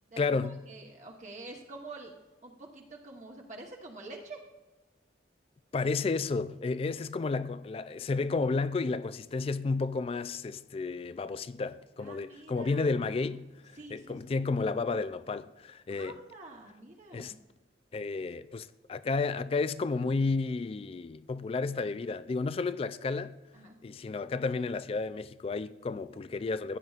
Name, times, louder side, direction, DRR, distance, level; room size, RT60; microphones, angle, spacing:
voice 1, 0.2-0.6 5.7-16.2 17.1-17.3 17.9-23.3 23.8-26.8, left 4 dB, 35° left, 0.3 m, -32 dB
voice 2, 0.7-2.1 2.4-4.4 12.0-13.0 13.8-14.5 15.9-17.4 23.5-23.8, right 2 dB, 40° right, 1.0 m, -47 dB
16.0 x 9.2 x 2.4 m
head